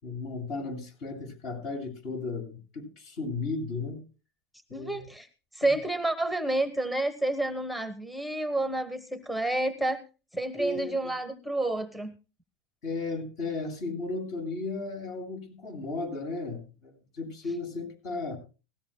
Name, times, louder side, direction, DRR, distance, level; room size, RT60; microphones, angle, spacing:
voice 1, 0.0-4.0 4.7-5.0 5.6-5.7 10.6-11.1 12.8-18.4, left 3 dB, 50° left, 7 dB, 7.9 m, -35 dB
voice 2, 4.7-5.3 5.5-10.0 10.3-12.1, right 2 dB, 5° left, 11 dB, 1.2 m, -29 dB
19.5 x 16.5 x 2.2 m, 0.33 s
supercardioid pair, 130°, 0 cm